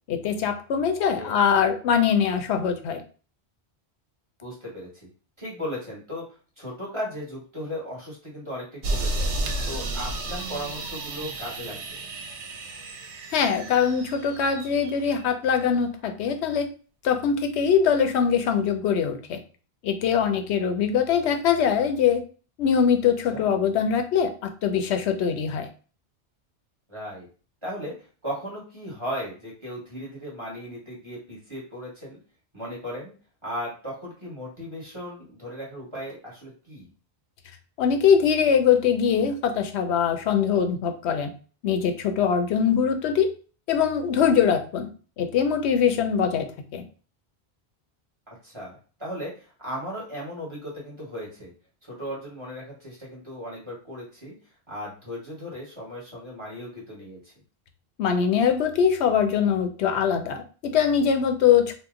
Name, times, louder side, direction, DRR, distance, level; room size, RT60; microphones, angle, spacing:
voice 1, 0.1-3.0 13.3-16.7 17.0-19.4 19.8-22.2 22.6-24.3 24.6-25.7 37.8-41.3 41.6-43.3 43.7-44.9 45.2-46.5 46.7-46.8 58.0-61.7, left 7 dB, 80° left, 7 dB, 0.8 m, -22 dB
voice 2, 4.4-5.1 5.4-6.2 6.6-9.3 9.6-11.8 23.3-23.5 26.9-27.3 27.6-27.9 28.2-32.2 32.5-33.1 33.4-36.9 42.6-42.7 48.4-51.5 51.8-54.3 54.7-57.3, equal, 25° right, -6 dB, 1.3 m, -36 dB
sound 1, 8.8-15.3, right 2 dB, 90° right, 0.9 m, -32 dB
2.8 x 2.0 x 3.6 m, 0.37 s
omnidirectional pair, 1.1 m